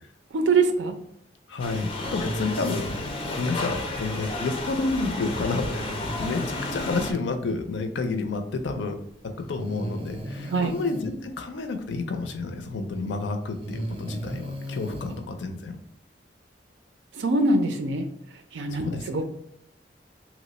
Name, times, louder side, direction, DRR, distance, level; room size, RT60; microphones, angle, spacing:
voice 1, 0.3-1.0 10.5-10.7 17.1-18.1 18.5-19.2, right 3 dB, 85° right, 6 dB, 0.5 m, -23 dB
voice 2, 1.5-2.9 3.4-5.9 6.2-9.0 9.2-15.8 18.7-19.0, left 3 dB, 85° left, 6 dB, 0.5 m, -30 dB
sound 1, 1.6-7.1, left 2 dB, 30° left, 0.4 m, -32 dB
Breathing, 2.0-3.6 5.6-7.2 8.6-8.7 9.6-11.1 12.7-12.8 13.5-15.2, right 1 dB, 30° right, 0.4 m, -36 dB
3.0 x 2.0 x 4.0 m, 0.71 s
head